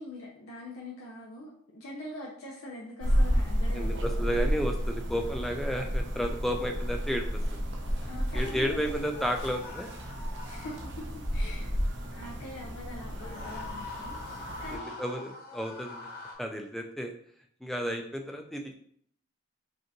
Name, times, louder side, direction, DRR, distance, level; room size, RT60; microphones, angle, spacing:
voice 1, 0.0-4.4 8.0-8.9 10.4-11.7 12.1-15.2, left 1 dB, 90° left, -4 dB, 0.8 m, -43 dB
sound 1, 3.0-14.8, equal, 55° right, 0.6 m, -32 dB
voice 2, 3.7-7.2 7.5-7.6 8.3-9.9 14.7-16.1 16.4-17.1 17.6-18.7, equal, ahead, 3 dB, 0.3 m, -32 dB
sound 2, 8.9-11.3 13.1-16.3, left 2 dB, 50° left, 1.0 m, -43 dB
5.1 x 2.5 x 2.9 m, 0.63 s
head